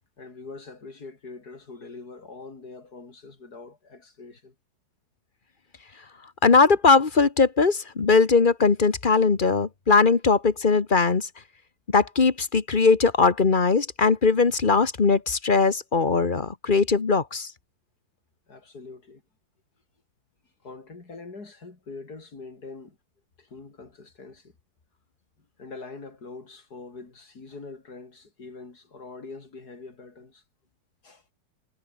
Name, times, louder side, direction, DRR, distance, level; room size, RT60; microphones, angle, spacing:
voice 1, 0.2-4.5 18.5-19.2 20.6-23.0 23.4-24.5 25.6-30.4 31.0-31.2, left 3 dB, 50° left, 4.6 m, -43 dB
voice 2, 6.4-11.3 11.9-17.5, left 4 dB, 30° left, 1.2 m, -20 dB
omnidirectional pair, 2.1 m